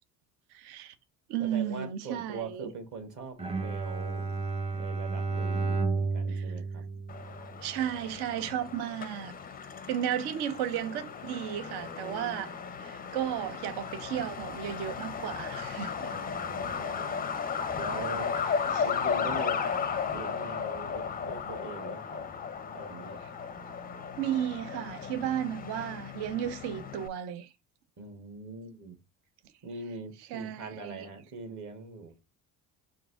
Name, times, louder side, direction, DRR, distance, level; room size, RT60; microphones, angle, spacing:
voice 1, 0.5-0.9 1.3-2.7 6.3-6.5 7.6-9.3 9.9-12.5 12.8-16.1 18.7-18.9 23.2-23.3 24.2-27.5 30.2-31.1, right 10 dB, 60° right, 0.7 m, -34 dB
voice 2, 1.4-4.4 4.7-6.8 16.1-17.2 17.8-18.3 18.6-22.3 22.7-23.2 28.0-29.0 29.6-32.1, right 4 dB, 40° right, 1.4 m, -42 dB
Bowed string instrument, 3.4-7.8, right 4 dB, 15° right, 0.8 m, -32 dB
Truck, 7.1-27.1, left 6 dB, 20° left, 0.5 m, -35 dB
3.9 x 2.6 x 3.6 m
hypercardioid pair, 60°, 45 cm